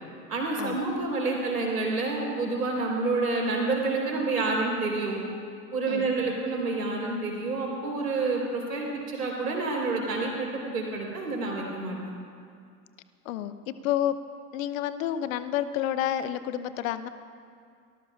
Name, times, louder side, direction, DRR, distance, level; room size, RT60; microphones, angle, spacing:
voice 1, 0.3-5.2 5.7-12.0, right 3 dB, 80° right, -1 dB, 4.3 m, -28 dB
voice 2, 13.2-14.1 14.5-17.1, left 11 dB, 60° left, 13 dB, 0.9 m, -29 dB
27.0 x 19.0 x 2.5 m, 2.3 s
figure-of-eight pair, 75°, 47 cm